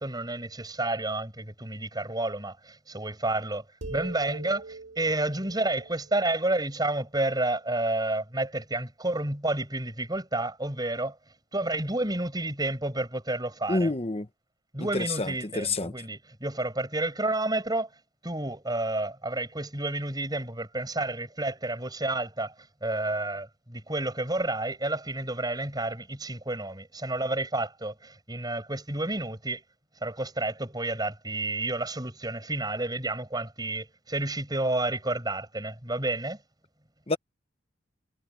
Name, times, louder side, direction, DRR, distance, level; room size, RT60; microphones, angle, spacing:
voice 1, 0.0-11.2 11.5-13.9 14.7-17.9 18.2-22.5 22.8-29.6 30.0-36.4, right 2 dB, 20° right, 6.9 m, -30 dB
sound 1, 3.8-7.3, right 3 dB, 65° right, 5.6 m, -43 dB
voice 2, 13.7-14.3 14.8-15.9 37.1-37.2, left 2 dB, 30° left, 1.1 m, -28 dB
head